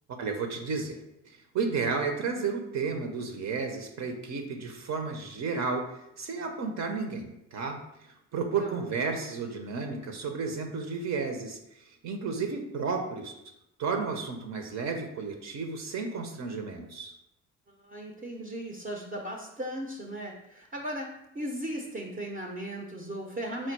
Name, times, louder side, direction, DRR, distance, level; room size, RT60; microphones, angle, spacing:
voice 1, 0.2-1.0 1.5-5.8 6.2-7.8 8.3-11.6 12.0-13.3 13.8-17.1, right 4 dB, 60° right, 4 dB, 0.8 m, -32 dB
voice 2, 17.7-23.7, right 1 dB, 30° right, 0 dB, 0.6 m, -37 dB
4.4 x 2.2 x 4.4 m, 0.83 s
cardioid pair, 90°, 30 cm